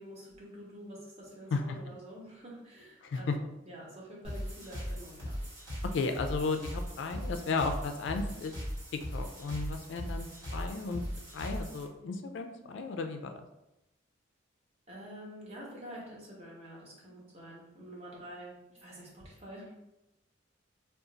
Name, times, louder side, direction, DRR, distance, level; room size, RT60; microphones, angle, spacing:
voice 1, 0.0-5.3 14.9-18.5 18.8-19.7, equal, 30° right, -5 dB, 0.9 m, -47 dB
voice 2, 3.0-3.4 5.9-8.5 9.1-11.0 11.3-13.4, left 4 dB, 70° left, 6 dB, 0.3 m, -34 dB
sound 1, 4.2-11.8, equal, 70° right, 1.4 m, -39 dB
2.5 x 2.3 x 3.8 m, 0.92 s
head